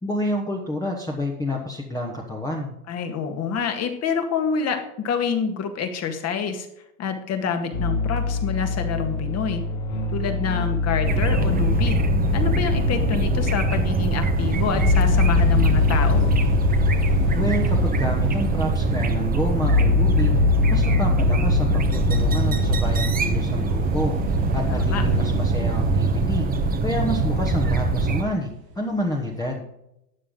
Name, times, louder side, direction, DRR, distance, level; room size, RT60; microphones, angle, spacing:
voice 1, 0.0-2.7 17.3-20.4 20.7-24.1 24.5-26.5 26.8-29.6, equal, 5° left, 0 dB, 1.3 m, -28 dB
voice 2, 2.9-6.7 7.0-9.6 10.1-12.0 12.3-16.4 24.7-25.0, left 6 dB, 30° left, 6 dB, 1.9 m, -27 dB
sound 1, 7.7-22.7, left 4 dB, 55° left, 2.2 m, -23 dB
sound 2, 11.0-28.2, right 3 dB, 20° right, 1.1 m, -23 dB
sound 3, 14.4-29.5, right 2 dB, 85° right, 4.8 m, -38 dB
12.5 x 8.5 x 3.8 m, 0.83 s
hypercardioid pair, 115°, 47 cm